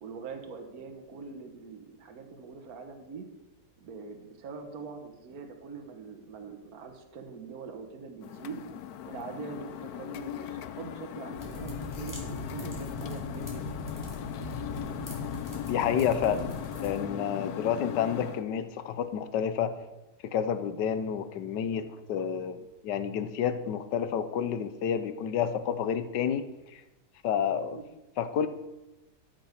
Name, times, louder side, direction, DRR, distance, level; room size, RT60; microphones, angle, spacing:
voice 1, 0.0-3.3 3.8-8.6 9.1-13.8 27.7-27.8, right 5 dB, 60° right, 5 dB, 1.7 m, -43 dB
sound 1, 8.2-18.4, left 11 dB, 70° left, 1.1 m, -39 dB
sound 2, 11.3-17.0, left 2 dB, 10° left, 2.5 m, -39 dB
voice 2, 15.6-19.7 20.2-26.4 26.7-26.8 27.2-27.8 28.2-28.5, left 8 dB, 90° left, 12 dB, 1.4 m, -30 dB
13.0 x 6.1 x 6.6 m, 1.0 s
omnidirectional pair, 1.8 m